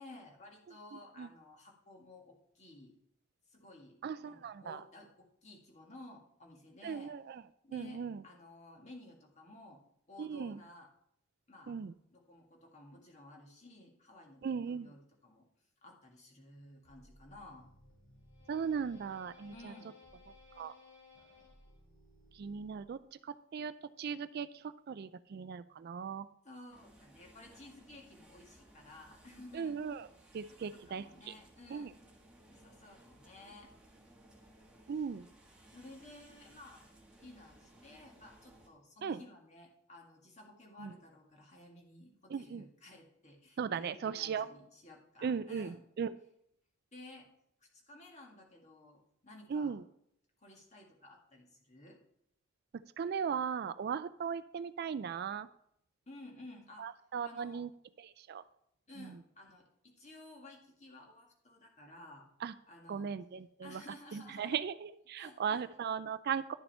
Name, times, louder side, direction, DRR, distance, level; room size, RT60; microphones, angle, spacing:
voice 1, 0.0-2.9 3.5-7.1 7.6-9.8 10.1-10.9 11.5-11.8 12.1-15.4 15.8-17.7 19.5-19.9 26.4-29.8 30.2-32.0 32.5-33.7 35.7-36.9 37.2-45.9 46.9-47.3 47.6-49.7 50.4-52.0 56.1-56.9 57.2-57.6 58.9-62.3 62.7-63.1 63.6-64.6 65.2-65.6, left 2 dB, 35° left, 1 dB, 1.9 m, -54 dB
voice 2, 0.9-1.3 4.0-4.8 6.8-7.4 7.7-8.2 10.2-10.6 11.7-11.9 14.4-14.9 18.5-19.7 20.6-20.7 22.3-26.3 29.5-30.1 30.3-31.3 31.7-31.9 34.9-35.3 39.0-39.2 40.8-40.9 42.3-42.6 43.6-44.5 45.2-46.1 49.5-49.8 53.0-55.5 56.8-57.7 58.0-58.4 59.0-59.1 62.4-62.5 62.9-63.8 64.1-66.5, right 6 dB, 50° right, 14 dB, 0.3 m, -38 dB
sound 1, 16.9-23.1, left 2 dB, 60° left, 3.7 m, -60 dB
sound 2, 26.7-38.7, right 1 dB, 5° right, 1.5 m, -61 dB
11.0 x 7.0 x 4.2 m, 0.73 s
head